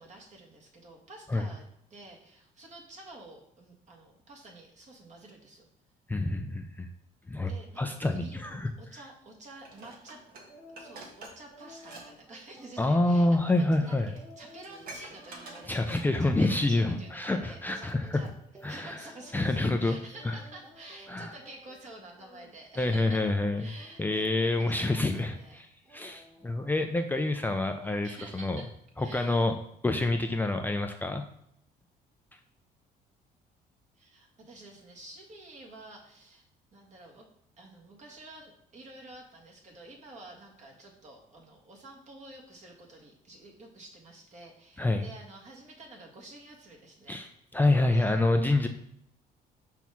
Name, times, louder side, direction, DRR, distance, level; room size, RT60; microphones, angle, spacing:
voice 1, 0.0-5.7 7.4-10.2 10.7-18.3 18.7-23.3 23.6-25.6 26.4-26.5 28.0-28.7 29.0-29.5 34.0-36.4 36.7-37.2 37.6-47.2 47.9-48.2 48.6-48.7, right 2 dB, 45° right, 0 dB, 1.9 m, -50 dB
voice 2, 6.1-6.9 7.3-7.5 7.8-8.7 12.8-14.1 15.7-18.3 18.6-19.0 19.3-20.0 20.2-20.3 21.1-21.3 22.8-23.7 24.0-28.6 29.0-29.5 29.8-31.2 44.8-45.0 47.1-48.7, left 2 dB, 10° left, 5 dB, 0.5 m, -27 dB
Dishes pots and pans, 9.6-12.1 12.4-12.6 13.4-13.5 13.9-14.0 14.2-16.4 16.8-16.9, right 2 dB, 60° right, 1.5 m, -48 dB
sound 1, 10.5-11.2 11.5-19.5 19.8-21.2 21.4-21.9 22.2-25.6 25.9-26.5 26.9-27.1, left 1 dB, 15° right, 1.6 m, -54 dB
6.0 x 3.5 x 5.9 m, 0.74 s
cardioid pair, 110°, 17 cm